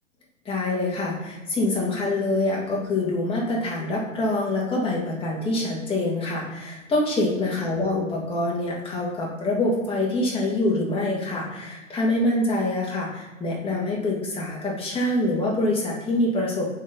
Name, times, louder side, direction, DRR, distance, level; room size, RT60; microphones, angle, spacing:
voice 1, 0.4-16.7, left 2 dB, 15° left, -4 dB, 2.3 m, -25 dB
9.6 x 4.8 x 4.1 m, 1.1 s
hypercardioid pair, 115°, 40 cm